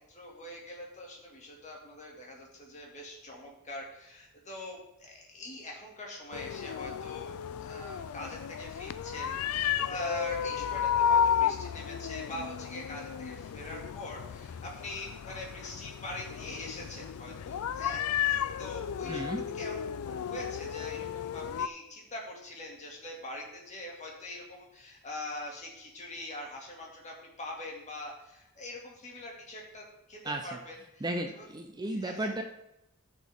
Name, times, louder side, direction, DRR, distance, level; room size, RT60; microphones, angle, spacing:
voice 1, 0.1-31.5 31.9-32.3, left 1 dB, 35° left, -2 dB, 2.3 m, -43 dB
sound 1, 6.3-21.7, left 8 dB, 75° left, 0.3 m, -33 dB
voice 2, 19.1-19.5 30.2-30.6 31.0-32.4, right 1 dB, 20° right, 4 dB, 0.5 m, -34 dB
14.0 x 6.3 x 3.6 m, 0.85 s
head